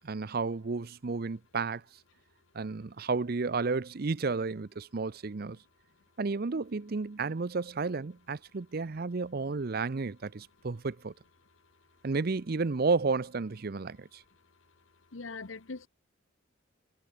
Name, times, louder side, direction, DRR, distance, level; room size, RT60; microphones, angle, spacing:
voice 1, 0.0-1.8 2.5-5.6 6.2-11.1 12.0-14.2, right 4 dB, 50° right, 0.6 m, -32 dB
voice 2, 15.1-15.9, left 3 dB, 75° left, 1.1 m, -41 dB
head